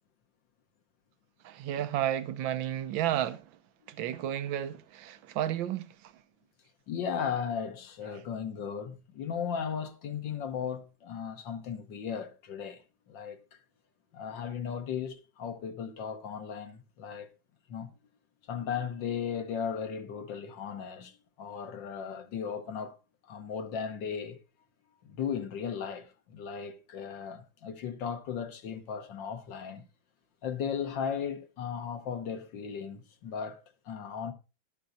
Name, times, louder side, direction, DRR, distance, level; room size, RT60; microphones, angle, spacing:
voice 1, 1.4-3.4 3.9-5.9, right 11 dB, 80° right, 1.5 m, -32 dB
voice 2, 6.9-12.8 13.1-13.4 14.1-17.3 17.7-17.9 18.5-22.9 23.3-24.4 25.0-29.8 30.4-33.6 33.9-34.3, left 7 dB, 75° left, 1.8 m, -36 dB
13.0 x 11.5 x 2.6 m
omnidirectional pair, 2.1 m